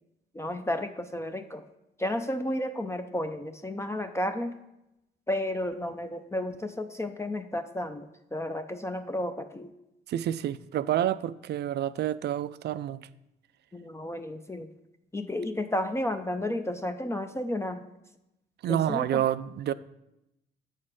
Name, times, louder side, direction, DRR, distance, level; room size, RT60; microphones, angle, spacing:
voice 1, 0.3-1.6 2.0-4.5 5.3-9.7 13.7-14.7 15.1-17.8 18.7-19.2, left 1 dB, 15° left, 7 dB, 0.5 m, -32 dB
voice 2, 10.1-13.1 18.6-19.7, right 11 dB, 60° right, 15 dB, 0.4 m, -28 dB
7.8 x 6.4 x 3.7 m, 0.87 s
cardioid pair, 90°, 20 cm